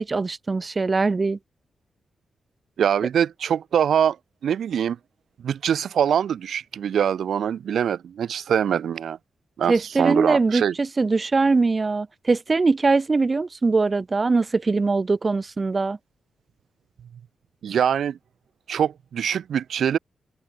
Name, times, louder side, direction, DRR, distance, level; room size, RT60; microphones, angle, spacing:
voice 1, 0.0-1.4 9.7-16.0, right 3 dB, 40° right, 0.3 m, -22 dB
voice 2, 2.8-4.2 4.4-5.0 5.4-9.2 9.6-10.7 17.6-18.2 18.7-20.0, right 8 dB, 75° right, 1.1 m, -23 dB
supercardioid pair, 50°, 0 cm